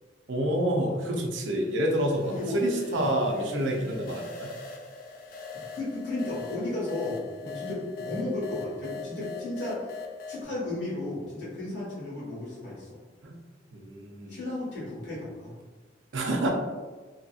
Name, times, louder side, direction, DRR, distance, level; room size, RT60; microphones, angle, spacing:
voice 1, 0.3-4.5 13.2-13.3 13.7-14.4 16.1-16.5, right 1 dB, 80° right, 1 dB, 0.6 m, -28 dB
sound 1, 1.4-10.4, left 4 dB, 50° left, 0.4 m, -42 dB
voice 2, 2.3-2.6 2.9-3.1 3.9-4.1 5.5-10.0 10.3-12.9 14.3-15.5, left 2 dB, 70° left, -7 dB, 1.5 m, -34 dB
2.8 x 2.6 x 2.4 m, 1.3 s
head